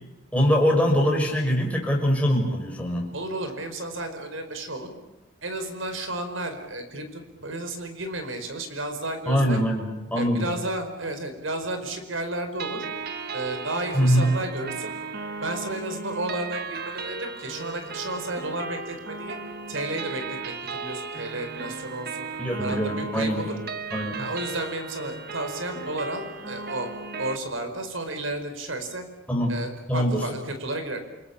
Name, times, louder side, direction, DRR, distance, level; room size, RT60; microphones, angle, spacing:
voice 1, 0.3-3.1 9.3-10.5 13.9-14.2 22.4-23.4 23.9-24.3 29.3-29.5 29.9-30.2, equal, 5° left, 0 dB, 6.0 m, -23 dB
voice 2, 3.1-4.9 5.4-9.6 10.1-12.9 13.3-14.9 15.4-19.4 19.7-22.2 22.6-23.5 24.2-26.9 27.2-29.0 29.5-31.0, right 2 dB, 70° right, 7 dB, 5.0 m, -32 dB
sound 1, 12.6-27.4, right 4 dB, 50° right, 1.7 m, -35 dB
28.5 x 21.0 x 8.7 m, 1.1 s
head